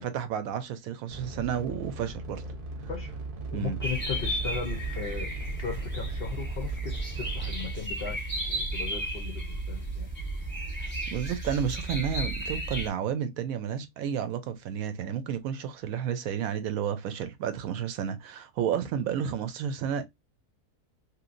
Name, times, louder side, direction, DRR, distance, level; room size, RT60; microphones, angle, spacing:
voice 1, 0.0-2.4 3.5-3.8 10.8-20.0, right 8 dB, 70° right, 0.9 m, -31 dB
sound 1, 1.1-7.9, right 3 dB, 45° right, 0.8 m, -38 dB
voice 2, 3.5-10.1, left 6 dB, 60° left, 0.6 m, -37 dB
sound 2, 3.8-12.9, right 1 dB, 10° left, 0.9 m, -33 dB
3.0 x 2.7 x 2.4 m
omnidirectional pair, 1.6 m